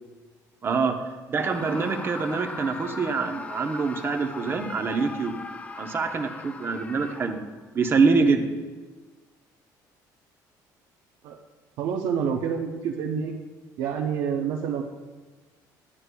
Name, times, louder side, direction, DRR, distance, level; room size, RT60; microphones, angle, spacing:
voice 1, 0.6-1.0 1.3-5.4 5.8-7.4 7.7-8.4, right 4 dB, 30° right, 5 dB, 0.7 m, -25 dB
Screaming, 1.4-7.6, left 3 dB, 20° left, 0.3 m, -39 dB
voice 2, 11.8-13.3 13.8-14.8, right 7 dB, 80° right, 1 dB, 0.6 m, -27 dB
9.8 x 9.5 x 2.2 m, 1.3 s
cardioid pair, 130°, 7 cm